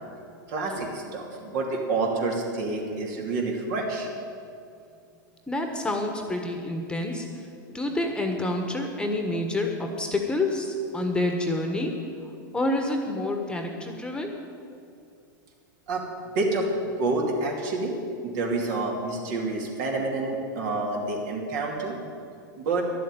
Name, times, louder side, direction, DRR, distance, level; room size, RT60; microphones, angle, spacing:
voice 1, 0.5-4.1 15.9-16.0 16.3-18.0 18.2-21.9 22.6-22.8, right 3 dB, 60° right, 0 dB, 2.8 m, -28 dB
voice 2, 5.5-7.3 7.7-11.9 12.5-14.4, left 2 dB, 10° left, 3 dB, 1.3 m, -28 dB
11.5 x 7.7 x 9.1 m, 2.4 s
hypercardioid pair, 110°, 11 cm